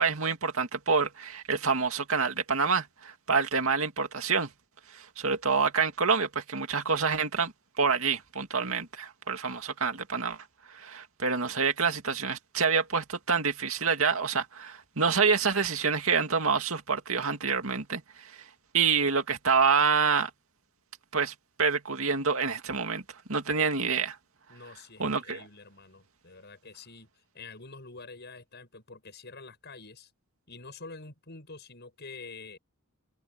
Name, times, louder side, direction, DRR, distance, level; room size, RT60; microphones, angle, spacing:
voice 1, 0.0-4.5 4.9-10.4 10.7-18.4 18.7-20.3 21.1-23.0 23.3-24.2 25.0-25.4, right 5 dB, 70° right, 2.5 m, -27 dB
voice 2, 24.5-30.1 30.5-32.6, left 3 dB, 50° left, 7.0 m, -47 dB
head